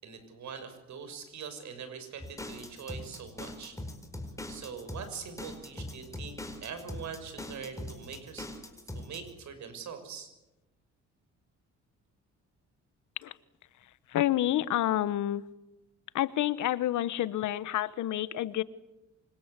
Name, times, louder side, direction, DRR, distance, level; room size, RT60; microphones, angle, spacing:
voice 1, 0.0-3.8 4.5-8.5 8.9-10.3, right 6 dB, 70° right, 6.7 m, -43 dB
sound 1, 2.2-9.3, left 1 dB, 10° left, 4.8 m, -41 dB
voice 2, 14.1-15.4 16.1-18.6, left 13 dB, 75° left, 1.2 m, -28 dB
25.5 x 25.5 x 8.3 m
cardioid pair, 90°, 30 cm